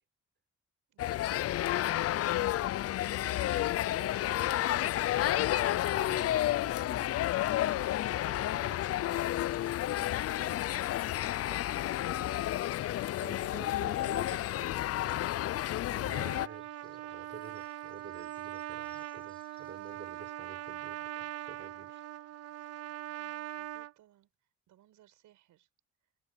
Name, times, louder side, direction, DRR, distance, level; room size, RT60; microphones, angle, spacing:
voice 1, 0.9-2.5 13.8-14.4 23.1-25.7, right 13 dB, 85° right, 6.4 m, -65 dB
sound 1, 1.0-16.5, left 13 dB, 55° left, 0.4 m, -31 dB
voice 2, 3.0-12.4 13.1-15.2 15.9-22.0, right 5 dB, 40° right, 6.1 m, -52 dB
sound 2, 15.6-20.3 20.6-20.8 21.0-21.1, left 3 dB, 15° left, 7.4 m, -67 dB
Trumpet, 15.9-23.9, right 14 dB, 55° right, 0.5 m, -42 dB
cardioid pair, 90°, 30 cm